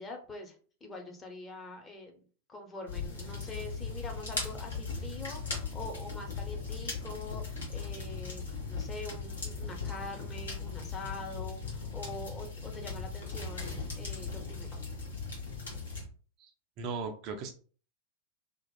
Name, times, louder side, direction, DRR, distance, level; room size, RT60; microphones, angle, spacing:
voice 1, 0.0-2.2 2.5-14.9, left 2 dB, 20° left, 2 dB, 0.7 m, -44 dB
sound 1, 2.9-16.0, left 4 dB, 70° left, 1.0 m, -38 dB
voice 2, 16.8-17.5, right 4 dB, 40° right, 5 dB, 0.4 m, -37 dB
2.9 x 2.2 x 2.2 m, 0.40 s
figure-of-eight pair, 90°, 0 cm